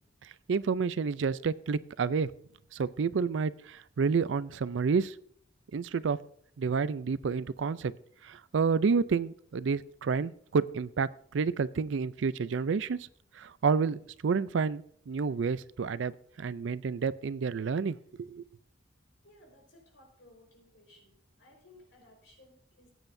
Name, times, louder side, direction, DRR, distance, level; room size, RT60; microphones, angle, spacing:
voice 1, 0.2-2.3 2.7-5.1 5.7-6.2 6.6-7.9 8.2-13.0 13.4-16.1 16.4-18.4, right 5 dB, 70° right, 17 dB, 0.4 m, -29 dB
voice 2, 19.2-22.9, left 1 dB, 75° left, 1 dB, 4.6 m, -59 dB
19.5 x 9.1 x 2.6 m, 0.63 s
head